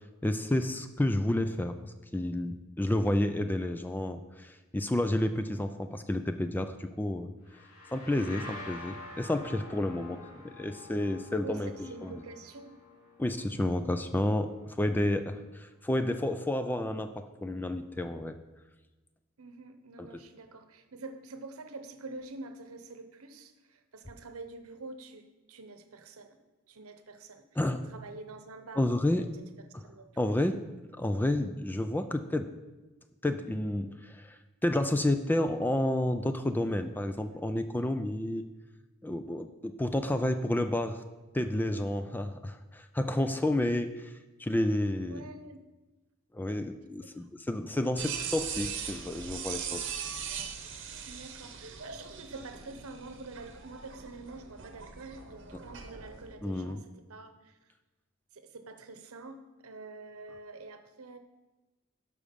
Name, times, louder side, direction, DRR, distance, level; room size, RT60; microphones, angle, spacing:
voice 1, 0.2-1.7 2.1-7.3 7.9-11.7 12.0-12.2 13.2-18.3 20.0-20.1 27.6-27.9 28.8-29.2 30.2-30.6 31.0-32.5 33.2-38.4 39.0-41.0 41.3-44.1 44.4-45.3 46.3-49.9 56.4-56.8, left 1 dB, 10° left, 9 dB, 0.3 m, -30 dB
sound 1, 7.4-15.0, left 2 dB, 75° left, 2.6 m, -48 dB
voice 2, 10.0-10.3 11.4-12.8 19.4-26.4 26.7-27.6 27.9-29.4 29.8-30.4 40.0-40.5 45.1-45.6 47.0-47.3 51.1-57.7 58.3-61.2, right 3 dB, 85° right, 8 dB, 0.9 m, -47 dB
sound 2, 48.0-56.3, right 7 dB, 55° right, 0.9 m, -40 dB
12.0 x 5.0 x 5.2 m, 1.1 s
head